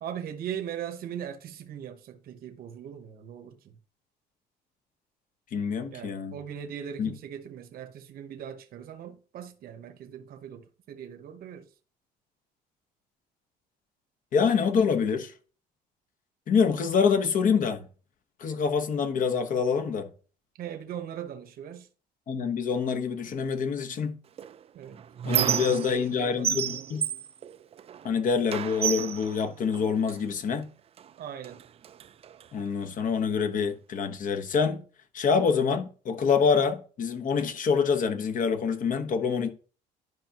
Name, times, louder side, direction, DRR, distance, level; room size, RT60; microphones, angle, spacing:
voice 1, 0.0-3.6 5.9-11.7 20.6-21.9 24.7-25.0 25.3-26.7 31.2-31.6, right 9 dB, 60° right, 0.9 m, -40 dB
voice 2, 5.5-6.3 7.0-7.1 14.3-15.3 16.5-17.9 18.4-20.1 22.3-24.2 25.2-27.1 28.0-30.7 32.5-34.8 35.1-39.5, left 6 dB, 50° left, 1.1 m, -26 dB
Squeak, 24.4-26.2 26.4-28.1 28.5-30.2 31.0-31.1 31.4-32.5, right 9 dB, 35° right, 0.4 m, -31 dB
11.0 x 5.1 x 2.9 m
cardioid pair, 110°, 17 cm